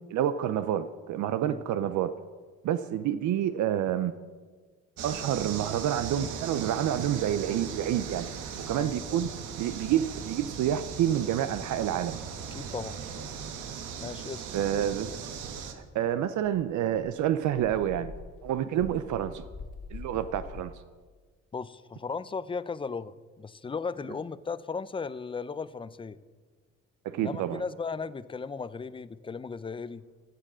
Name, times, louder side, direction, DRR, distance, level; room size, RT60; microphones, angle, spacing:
voice 1, 0.1-2.1 2.6-4.1 5.0-8.3 8.7-9.3 9.6-12.2 14.5-15.1 15.7-18.1 18.4-19.4 19.9-20.7 27.0-27.6, right 10 dB, 75° right, 12 dB, 0.6 m, -28 dB
sound 1, 5.0-15.7, right 6 dB, 90° right, 1.2 m, -38 dB
voice 2, 8.7-9.2 12.5-13.0 14.0-14.5 21.5-26.2 27.2-30.0, left 5 dB, 20° left, 16 dB, 0.4 m, -36 dB
Dog, 16.0-16.1 16.4-20.6, left 4 dB, 50° left, 1.6 m, -44 dB
15.5 x 6.7 x 6.1 m, 1.5 s
cardioid pair, 90°, 30 cm